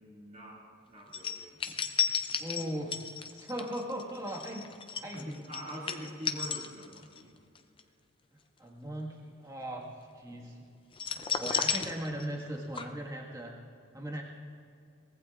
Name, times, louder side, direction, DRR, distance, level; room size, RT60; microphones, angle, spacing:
voice 1, 0.0-2.5 5.1-7.3, equal, 35° right, -4 dB, 2.3 m, -45 dB
sound 1, 1.1-7.2 7.6-7.8 10.9-12.5 12.8-12.9, left 6 dB, 25° left, 0.5 m, -33 dB
voice 2, 2.4-3.1 3.3-4.7 5.0-5.3 8.6-9.9 10.1-10.6 11.1-13.5 13.9-14.2, right 1 dB, 15° right, -2 dB, 1.5 m, -38 dB
23.0 x 19.5 x 2.4 m, 2.4 s
head